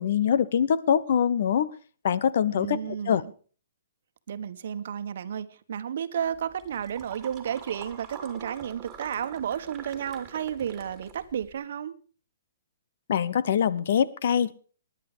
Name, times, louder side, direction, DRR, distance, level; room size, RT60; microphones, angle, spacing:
voice 1, 0.0-1.7 2.0-2.8 3.1-3.2 13.1-14.5, left 8 dB, 60° left, 1.0 m, -23 dB
voice 2, 2.5-3.3 4.3-11.9, right 8 dB, 60° right, 1.2 m, -32 dB
sound 1, 6.2-11.5, right 7 dB, 15° right, 2.6 m, -45 dB
18.5 x 10.5 x 5.0 m
hypercardioid pair, 160°, 0 cm